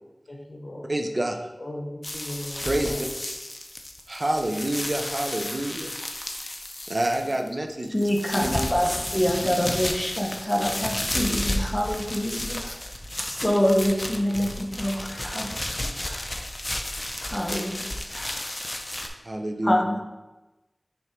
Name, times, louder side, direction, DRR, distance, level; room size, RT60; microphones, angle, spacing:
voice 1, 0.3-0.9 1.6-3.0, left 1 dB, 60° left, -3 dB, 1.1 m, -37 dB
voice 2, 0.9-1.4 2.6-3.0 4.1-5.9 6.4-6.6 6.9-8.1 8.4-8.7 19.2-19.8, right 1 dB, 50° right, 4 dB, 0.7 m, -28 dB
sound 1, 2.0-7.5 7.8-19.1, left 1 dB, 35° left, 0.7 m, -32 dB
voice 3, 7.9-12.7 13.4-15.6 16.1-16.2 17.2-18.4 19.6-20.0, equal, 15° left, 0 dB, 1.1 m, -26 dB
6.1 x 3.6 x 4.5 m, 1.0 s
wide cardioid pair, 50°, 0 cm